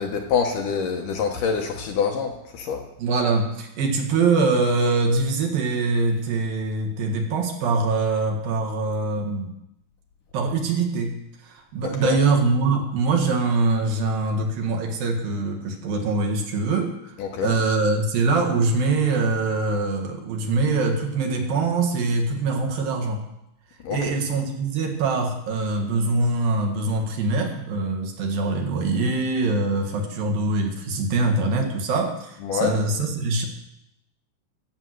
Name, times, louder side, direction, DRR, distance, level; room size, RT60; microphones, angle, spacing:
voice 1, 0.0-2.8 12.0-12.2 17.2-17.6 23.8-24.0 32.4-32.7, left 6 dB, 70° left, 3 dB, 2.3 m, -25 dB
voice 2, 3.0-9.5 10.3-11.2 11.4-17.1 17.4-23.2 23.9-33.5, right 3 dB, 70° right, 1 dB, 3.3 m, -23 dB
14.5 x 6.5 x 8.0 m, 0.84 s
omnidirectional pair, 4.5 m